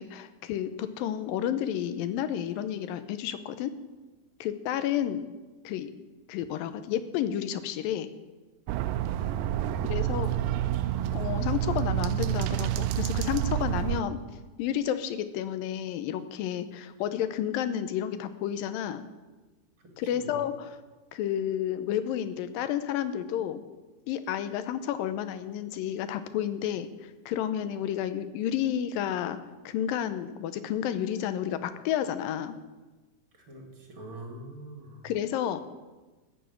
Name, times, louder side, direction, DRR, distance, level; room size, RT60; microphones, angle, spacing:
voice 1, 0.0-3.7 4.4-5.3 5.6-5.9 6.3-8.1 9.9-10.3 11.1-14.2 14.6-19.0 20.0-20.5 21.1-23.6 24.1-29.4 29.7-32.6 35.0-35.6, left 10 dB, 80° left, 11 dB, 2.3 m, -31 dB
sound 1, 8.7-14.0, right 13 dB, 90° right, 1.9 m, -28 dB
voice 2, 9.2-11.1 19.8-20.4 33.3-35.1, right 2 dB, 40° right, 2 dB, 2.5 m, -44 dB
14.0 x 7.1 x 9.0 m, 1.2 s
omnidirectional pair, 4.4 m